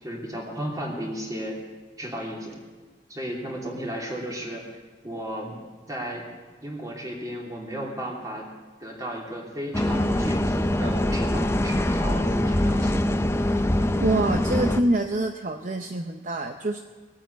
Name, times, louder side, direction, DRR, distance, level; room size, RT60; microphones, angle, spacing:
voice 1, 0.0-1.6 2.0-2.6 3.1-4.6 5.0-5.6 5.9-6.3 6.6-8.4 8.8-13.0, equal, 20° right, -2 dB, 3.1 m, -34 dB
sound 1, 9.7-14.8, left 1 dB, 15° left, 0.6 m, -23 dB
voice 2, 14.0-16.8, right 2 dB, 45° right, 5 dB, 0.7 m, -25 dB
19.5 x 8.9 x 8.1 m, 1.3 s
head